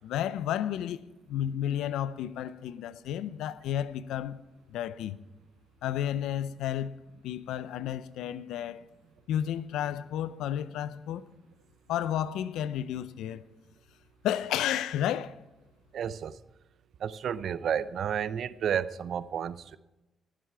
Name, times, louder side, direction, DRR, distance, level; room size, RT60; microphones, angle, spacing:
voice 1, 0.0-1.0 1.3-4.4 4.7-5.2 5.8-6.9 7.2-8.8 9.3-11.3 11.9-13.4 14.2-15.4, left 11 dB, 90° left, 0.5 m, -32 dB
voice 2, 15.9-16.4 17.0-19.8, right 8 dB, 70° right, 0.5 m, -31 dB
19.0 x 7.6 x 4.6 m
cardioid pair, 70°, 0 cm